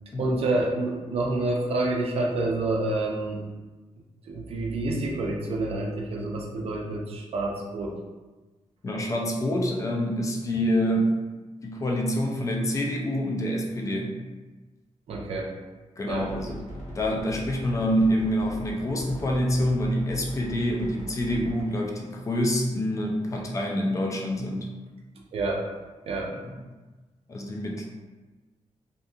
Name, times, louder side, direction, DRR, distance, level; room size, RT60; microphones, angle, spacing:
voice 1, 0.2-3.4 4.3-8.0 15.1-15.5 16.1-16.3 25.3-25.6 26.1-26.3, right 2 dB, 55° right, -1 dB, 0.5 m, -28 dB
voice 2, 8.8-11.2 11.6-14.2 16.0-24.7 26.4-26.5 27.3-27.8, equal, 25° left, 0 dB, 0.4 m, -26 dB
sound 1, 16.2-21.7, equal, 80° left, 0.9 m, -40 dB
2.6 x 2.5 x 2.3 m, 1.2 s
wide cardioid pair, 170°, 12 cm